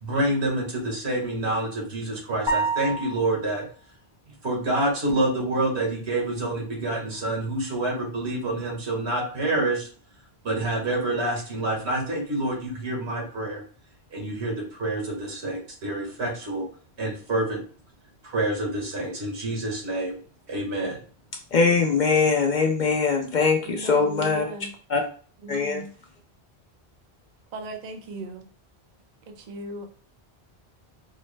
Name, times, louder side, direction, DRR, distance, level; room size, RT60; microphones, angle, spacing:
voice 1, 0.0-3.6 4.4-9.9 10.4-13.6 14.1-16.7 17.0-17.6 18.2-20.2 20.5-21.0, right 2 dB, 85° right, 1.7 m, -27 dB
sound 1, 2.5-3.5, right 3 dB, 30° right, 1.1 m, -27 dB
voice 2, 21.5-24.4 24.9-25.0 25.5-25.8, left 4 dB, 55° left, 0.6 m, -22 dB
voice 3, 23.6-24.7 25.4-25.9 27.5-28.5 29.3-29.9, right 2 dB, 50° right, 0.7 m, -37 dB
4.6 x 2.1 x 3.2 m
omnidirectional pair, 1.1 m